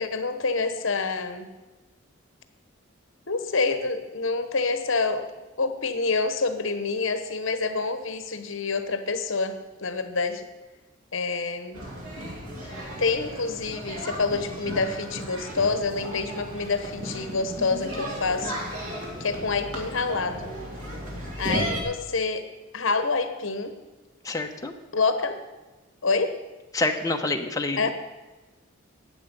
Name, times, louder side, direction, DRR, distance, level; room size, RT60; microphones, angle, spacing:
voice 1, 0.0-1.5 3.3-5.3 5.6-10.5 11.1-11.8 13.0-18.6 19.2-20.5 21.4-22.4 22.7-23.7 24.9-25.4 26.0-26.4 27.7-27.9, left 4 dB, 65° left, 9 dB, 1.1 m, -27 dB
sound 1, 11.7-21.8, equal, 90° right, 2.6 m, -35 dB
voice 2, 24.2-24.7 26.7-27.9, left 2 dB, 15° left, 3 dB, 0.9 m, -27 dB
13.5 x 8.9 x 5.3 m, 1.2 s
head